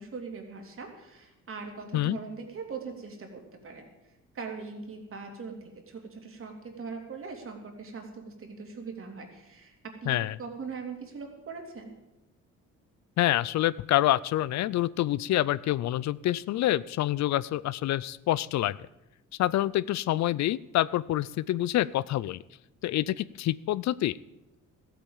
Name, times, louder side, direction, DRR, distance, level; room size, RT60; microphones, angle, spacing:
voice 1, 0.0-3.9 4.3-9.7 10.0-12.0, right 5 dB, 45° right, 3 dB, 3.0 m, -41 dB
voice 2, 13.2-18.8 19.4-22.4 22.8-24.2, left 14 dB, 65° left, 20 dB, 0.4 m, -27 dB
14.0 x 8.6 x 7.2 m, 0.96 s
cardioid pair, 100°, 30 cm